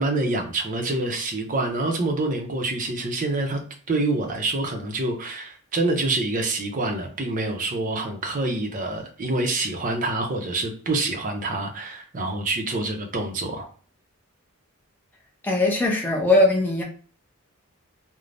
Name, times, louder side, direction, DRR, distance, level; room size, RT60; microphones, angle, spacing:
voice 1, 0.0-3.6 3.9-13.7, right 2 dB, 35° right, 0.5 m, -26 dB
voice 2, 15.4-16.8, left 2 dB, 10° left, 0.6 m, -20 dB
3.2 x 2.1 x 2.5 m
head